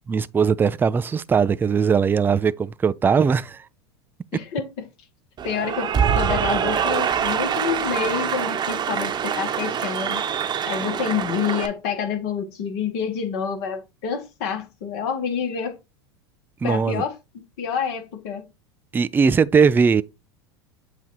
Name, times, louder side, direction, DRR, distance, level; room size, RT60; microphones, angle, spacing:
voice 1, 0.1-3.6 16.6-17.0 18.9-20.0, right 6 dB, 15° right, 0.3 m, -19 dB
voice 2, 4.3-4.9 5.4-10.2 10.7-15.8 16.6-17.1 17.6-18.4, left 7 dB, 60° left, 1.9 m, -28 dB
Cheering / Applause, 5.4-11.7, right 8 dB, 30° right, 1.0 m, -24 dB
7.7 x 2.8 x 4.7 m
hypercardioid pair, 95°, 14 cm